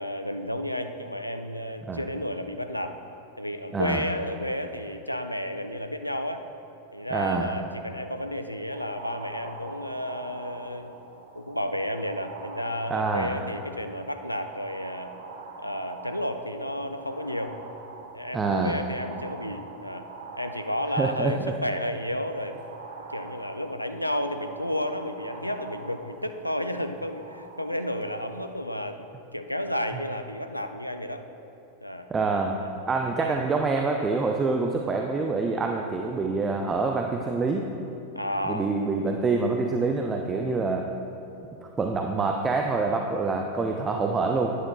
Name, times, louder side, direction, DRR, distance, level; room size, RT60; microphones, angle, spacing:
voice 1, 0.0-3.0 3.4-6.4 6.9-10.9 11.3-15.1 15.6-17.6 18.1-20.1 20.4-22.6 23.1-29.1 29.3-31.2 31.8-32.1 32.6-32.7 33.2-33.4 38.1-38.8, left 1 dB, 90° left, 8 dB, 0.4 m, -32 dB
voice 2, 3.7-4.0 7.1-7.5 12.9-13.3 18.3-18.8 21.0-21.5 32.1-32.6 32.9-37.7 38.5-40.8 41.6-44.6, right 3 dB, 20° right, 2 dB, 0.4 m, -26 dB
sound 1, 8.7-28.5, right 3 dB, 60° right, 0.8 m, -44 dB
11.0 x 9.7 x 2.2 m, 2.9 s
figure-of-eight pair, 90°, 0 cm